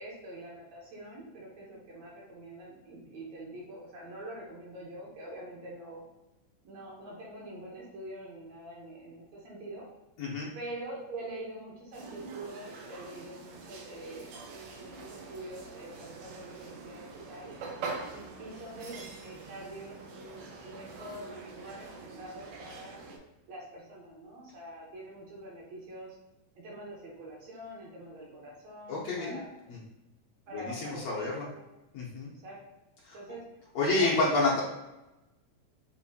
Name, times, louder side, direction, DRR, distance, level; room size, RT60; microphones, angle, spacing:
voice 1, 0.0-6.0 6.6-9.9 10.5-14.4 14.8-17.5 18.1-23.0 23.5-26.2 26.6-29.5 30.5-31.7 32.3-32.6 33.1-33.4 33.8-34.1, right 1 dB, 65° right, -4 dB, 1.9 m, -45 dB
voice 2, 10.2-10.5 28.9-29.4 29.7-29.8 30.5-31.5 31.9-32.3 33.0-33.2 33.8-34.6, left 2 dB, 70° left, -6 dB, 1.7 m, -29 dB
sound 1, 11.9-23.2, right 4 dB, 90° right, 2.3 m, -44 dB
6.3 x 2.7 x 2.7 m, 0.98 s
omnidirectional pair, 3.7 m